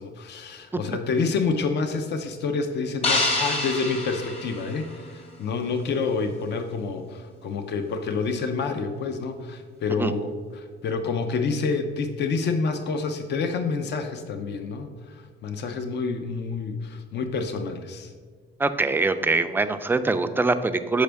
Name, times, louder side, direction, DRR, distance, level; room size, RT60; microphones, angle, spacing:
voice 1, 0.0-18.1, left 4 dB, 60° left, 7 dB, 0.6 m, -28 dB
sound 1, 3.0-5.3, left 2 dB, 30° left, 0.9 m, -27 dB
voice 2, 18.6-21.0, right 3 dB, 10° right, 9 dB, 0.3 m, -23 dB
6.4 x 5.0 x 3.4 m, 1.5 s
cardioid pair, 90°, 20 cm